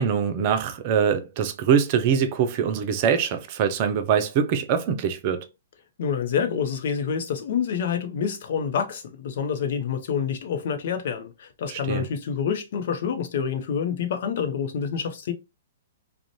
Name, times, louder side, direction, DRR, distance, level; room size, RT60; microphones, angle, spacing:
voice 1, 0.0-5.5 11.7-12.0, right 7 dB, 45° right, 0.5 m, -23 dB
voice 2, 6.0-15.3, left 7 dB, 60° left, 0.6 m, -27 dB
2.5 x 2.1 x 2.9 m
hypercardioid pair, 120°, 0 cm